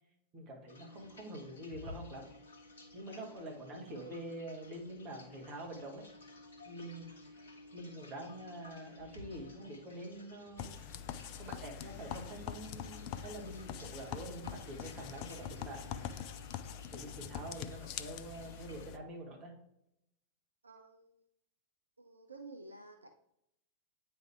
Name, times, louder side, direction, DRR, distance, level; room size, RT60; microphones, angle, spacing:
voice 1, 0.3-2.3 2.9-6.1 6.7-7.1 7.7-10.8 11.4-16.4 16.9-19.5, right 1 dB, 35° right, 0 dB, 1.7 m, -46 dB
sound 1, 0.7-18.9, left 2 dB, 70° left, 1.0 m, -55 dB
sound 2, 10.6-19.0, left 9 dB, 45° left, 0.4 m, -44 dB
voice 2, 20.6-21.3 22.0-23.1, right 3 dB, 80° right, 5 dB, 0.4 m, -52 dB
8.7 x 3.4 x 3.5 m, 0.79 s
figure-of-eight pair, 90°, 0 cm